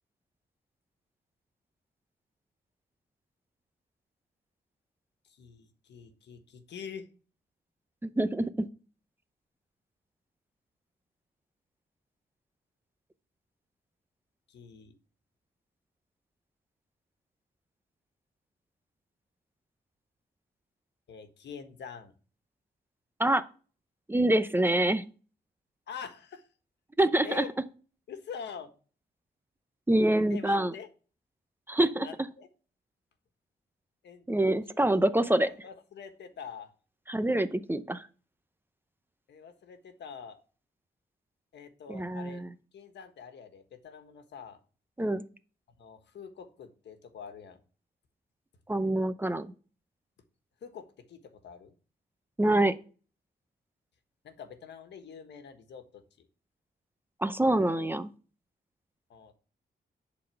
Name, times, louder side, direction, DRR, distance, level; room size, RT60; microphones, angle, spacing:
voice 1, 5.2-7.1 14.5-14.9 21.1-22.1 25.9-26.5 27.2-27.5 28.1-28.7 30.3-30.9 31.9-32.5 34.0-34.3 34.7-34.8 35.2-36.7 39.3-40.4 41.5-42.4 42.7-44.6 45.8-47.6 50.6-51.7 54.2-56.3 59.1-59.3, left 6 dB, 80° left, 8 dB, 1.4 m, -45 dB
voice 2, 8.0-8.5 23.2-23.4 24.1-25.0 27.0-27.4 29.9-30.7 31.7-32.1 34.3-35.5 37.1-38.1 41.9-42.5 45.0-45.2 48.7-49.5 52.4-52.7 57.2-58.1, right 1 dB, 10° right, 11 dB, 0.7 m, -25 dB
11.0 x 4.2 x 6.8 m, 0.38 s
cardioid pair, 100°, 18 cm